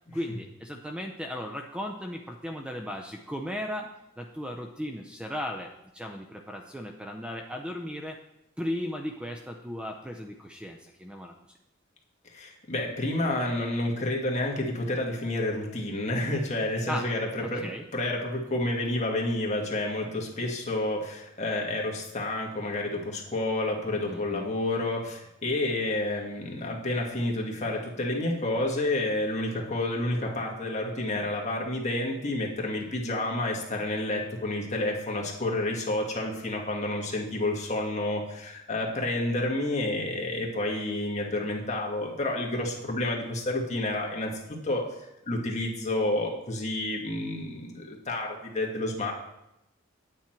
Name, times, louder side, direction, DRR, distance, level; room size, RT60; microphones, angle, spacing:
voice 1, 0.1-3.9 4.2-8.2 8.6-11.3 16.9-17.1 17.4-17.8 24.1-24.5, equal, 5° right, 3 dB, 0.5 m, -36 dB
voice 2, 12.3-44.3 44.6-44.8 45.3-49.1, left 1 dB, 35° left, -1 dB, 1.7 m, -29 dB
9.1 x 8.6 x 4.4 m, 0.88 s
head